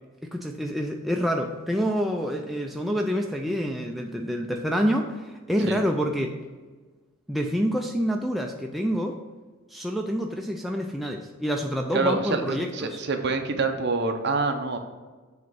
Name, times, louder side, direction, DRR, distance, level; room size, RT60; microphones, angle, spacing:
voice 1, 0.2-6.4 7.3-9.2 9.7-13.0, equal, ahead, 0 dB, 0.3 m, -27 dB
voice 2, 11.9-14.8, right 3 dB, 50° right, 5 dB, 0.6 m, -26 dB
7.1 x 3.1 x 6.0 m, 1.3 s
head